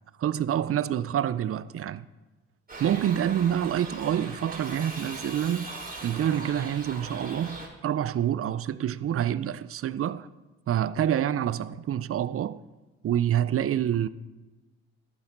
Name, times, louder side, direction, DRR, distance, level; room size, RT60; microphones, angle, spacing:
voice 1, 0.2-2.0 2.8-5.7 6.0-10.3 10.7-12.6 13.0-14.1, right 10 dB, 45° right, 0.6 m, -27 dB
Shout / Livestock farm animals working animals, 2.7-7.7, right 2 dB, 30° right, 4.3 m, -40 dB
12.0 x 8.8 x 5.3 m
supercardioid pair, 55°, 31 cm